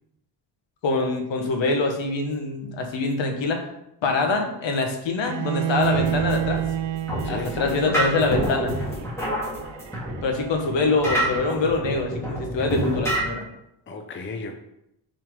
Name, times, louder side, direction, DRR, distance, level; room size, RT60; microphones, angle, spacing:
voice 1, 0.8-3.7 4.0-6.6 7.3-8.7 10.2-13.4, left 3 dB, 85° left, 3 dB, 1.4 m, -24 dB
Bowed string instrument, 5.3-11.3, right 11 dB, 90° right, 0.6 m, -30 dB
sound 1, 5.7-13.2, right 1 dB, 5° left, 1.9 m, -29 dB
voice 2, 7.2-8.1 10.9-11.0 13.9-14.5, left 3 dB, 25° left, 5 dB, 0.6 m, -34 dB
6.2 x 4.5 x 5.3 m, 0.82 s
wide cardioid pair, 180°, 44 cm